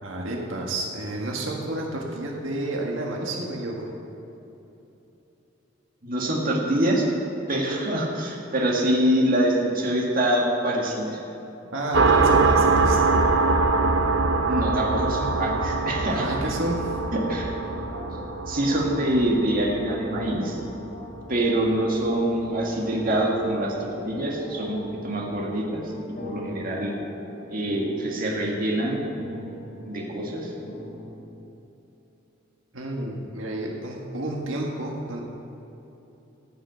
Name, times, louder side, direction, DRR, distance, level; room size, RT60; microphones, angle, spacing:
voice 1, 0.0-3.9 11.7-13.1 16.1-17.0 32.7-35.2, right 1 dB, 85° right, -1 dB, 1.7 m, -30 dB
voice 2, 6.0-7.1 7.5-11.2 14.5-16.3 17.1-17.5 18.5-20.6 21.3-25.9 26.2-26.9 27.5-29.0 29.8-30.5, right 1 dB, 45° right, -2 dB, 1.9 m, -25 dB
sound 1, 11.9-21.2, right 3 dB, 65° right, 0.7 m, -23 dB
sound 2, 15.9-31.1, left 1 dB, 60° left, 2.7 m, -40 dB
15.0 x 5.9 x 7.9 m, 3.0 s
head